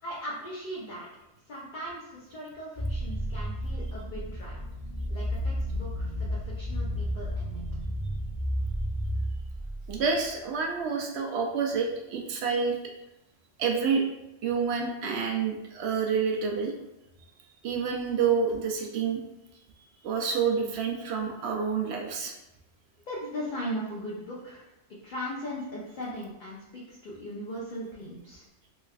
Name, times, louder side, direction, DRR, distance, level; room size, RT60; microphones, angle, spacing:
voice 1, 0.0-1.1 1.5-4.6 5.1-7.6 23.1-24.7 25.0-28.4, equal, 50° left, -5 dB, 0.7 m, -38 dB
sound 1, 2.8-10.3, equal, 20° left, 1.0 m, -32 dB
voice 2, 9.9-12.8 13.6-14.0 14.4-16.7 17.6-19.2 20.0-22.3, right 5 dB, 70° right, 2 dB, 0.8 m, -28 dB
3.3 x 3.1 x 2.3 m, 0.93 s
omnidirectional pair, 1.2 m